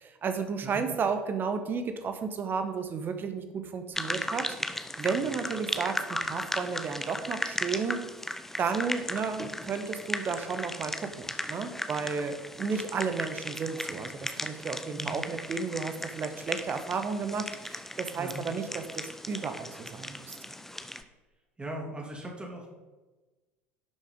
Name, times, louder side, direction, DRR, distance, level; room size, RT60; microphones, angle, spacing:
voice 1, 0.0-4.6 5.0-8.1 8.6-20.4, right 5 dB, 30° right, 8 dB, 1.3 m, -33 dB
sound 1, 4.0-21.0, left 1 dB, 5° left, 0.8 m, -37 dB
voice 2, 21.6-22.7, right 1 dB, 15° right, 0 dB, 2.9 m, -39 dB
11.5 x 6.6 x 5.2 m, 1.2 s
figure-of-eight pair, 65°, 6 cm